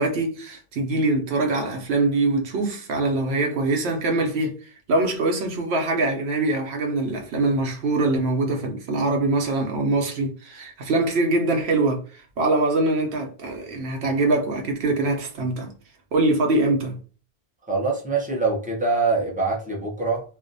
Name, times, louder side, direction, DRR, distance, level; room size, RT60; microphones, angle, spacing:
voice 1, 0.0-15.7 16.1-17.0, right 2 dB, 85° right, 0.9 m, -23 dB
voice 2, 17.7-20.2, right 3 dB, 10° right, 0.5 m, -24 dB
2.5 x 2.0 x 2.5 m
omnidirectional pair, 1.1 m